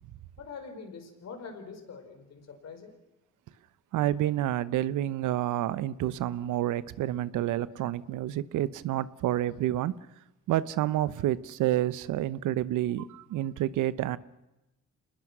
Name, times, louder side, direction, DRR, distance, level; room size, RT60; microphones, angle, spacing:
voice 1, 0.4-2.9, left 5 dB, 60° left, 4.8 m, -44 dB
voice 2, 3.9-9.9 10.5-14.2, right 13 dB, 85° right, 0.9 m, -29 dB
27.0 x 20.0 x 6.2 m
cardioid pair, 90°, 30 cm